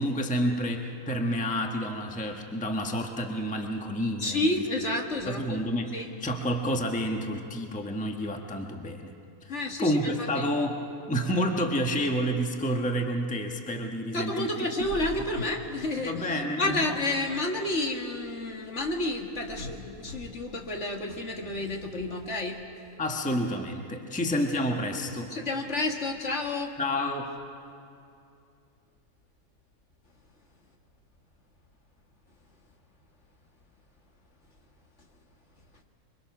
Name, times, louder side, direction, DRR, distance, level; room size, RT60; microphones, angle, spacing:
voice 1, 0.0-4.5 5.3-9.1 9.4-14.5 16.0-16.6 23.0-25.3 26.8-27.4, equal, 5° left, 2 dB, 1.2 m, -29 dB
voice 2, 4.2-5.4 5.9-6.1 9.5-10.5 14.1-22.6 25.3-26.7, left 2 dB, 50° left, 2 dB, 2.0 m, -30 dB
26.0 x 23.5 x 6.0 m, 2.5 s
omnidirectional pair, 1.5 m